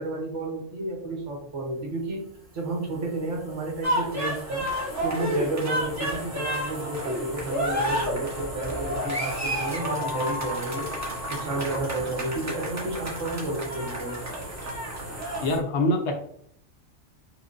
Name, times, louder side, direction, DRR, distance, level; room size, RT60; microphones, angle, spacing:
voice 1, 0.0-2.2 2.5-4.7 5.0-10.9 11.3-14.2, right 2 dB, 70° right, -1 dB, 1.3 m, -31 dB
sound 1, 1.2-15.6, equal, 40° right, 1.4 m, -41 dB
sound 2, 3.8-15.5, equal, 15° right, 0.6 m, -31 dB
voice 2, 15.4-16.3, left 1 dB, 70° left, 3 dB, 0.8 m, -24 dB
4.7 x 2.0 x 2.4 m, 0.68 s
omnidirectional pair, 1.3 m